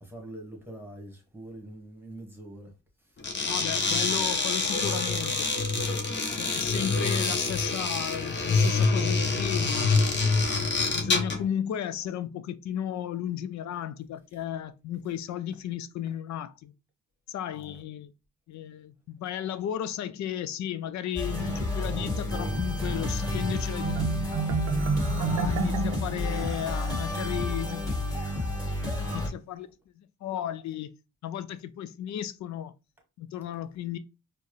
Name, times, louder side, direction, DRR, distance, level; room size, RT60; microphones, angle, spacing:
voice 1, 0.0-2.7 5.8-6.1 17.6-17.8, right 1 dB, 5° right, 1.5 m, -44 dB
sound 1, 3.2-11.5, left 3 dB, 35° left, 0.9 m, -26 dB
voice 2, 3.5-5.5 6.4-10.2 10.6-16.7 17.3-18.1 18.5-24.4 25.0-28.0 29.1-29.7 30.0-30.9 31.2-32.7 33.2-34.0, left 10 dB, 65° left, 0.5 m, -34 dB
sound 2, 21.2-29.3, left 2 dB, 10° left, 2.2 m, -30 dB
Marimba xylophone, 23.8-27.2, right 5 dB, 60° right, 0.7 m, -30 dB
4.4 x 2.2 x 3.1 m
cardioid pair, 90°, 30 cm